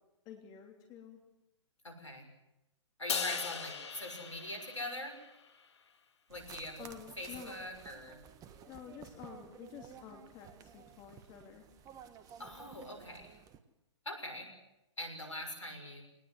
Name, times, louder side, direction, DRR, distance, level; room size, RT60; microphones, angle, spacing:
voice 1, 0.2-1.2 6.8-7.5 8.7-11.6, left 8 dB, 30° left, 3 dB, 3.1 m, -50 dB
voice 2, 1.8-2.3 3.0-5.2 6.3-6.8 7.2-8.2 12.4-13.3 14.0-14.5 15.0-16.0, left 1 dB, 85° left, 5 dB, 6.5 m, -42 dB
Crash cymbal, 3.1-5.5, left 6 dB, 65° left, 2.2 m, -39 dB
sound 1, 6.3-13.6, right 8 dB, 20° right, 1.5 m, -54 dB
22.5 x 19.5 x 8.0 m, 0.91 s
figure-of-eight pair, 120°, 15 cm